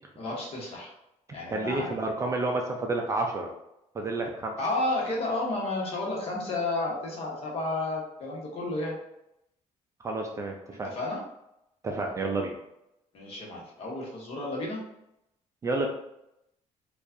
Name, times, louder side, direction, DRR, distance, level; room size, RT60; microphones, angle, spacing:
voice 1, 0.2-0.9 1.3-1.9 4.6-9.0 10.8-11.2 13.1-14.8, left 2 dB, 50° left, -3 dB, 1.1 m, -31 dB
voice 2, 1.5-3.5 3.9-4.6 10.0-10.9 11.8-12.6 15.6-15.9, right 2 dB, 25° right, 2 dB, 0.4 m, -30 dB
4.5 x 2.4 x 2.7 m, 0.83 s
cardioid pair, 180°, 13 cm